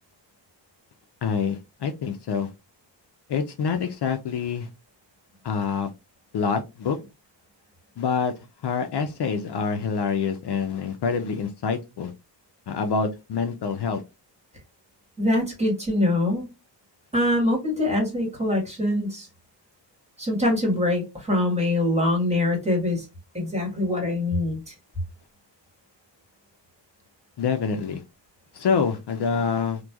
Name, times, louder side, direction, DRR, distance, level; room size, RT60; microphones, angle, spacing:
voice 1, 1.2-2.5 3.3-4.7 5.4-5.9 6.3-7.0 8.0-8.3 8.6-12.1 12.7-14.0 27.4-28.0 28.5-29.8, left 6 dB, 60° left, 0.5 m, -26 dB
voice 2, 15.2-16.4 17.1-19.3 20.2-23.0 23.3-24.6, left 1 dB, 15° right, 1.3 m, -23 dB
3.0 x 2.2 x 2.2 m
wide cardioid pair, 150°, 45 cm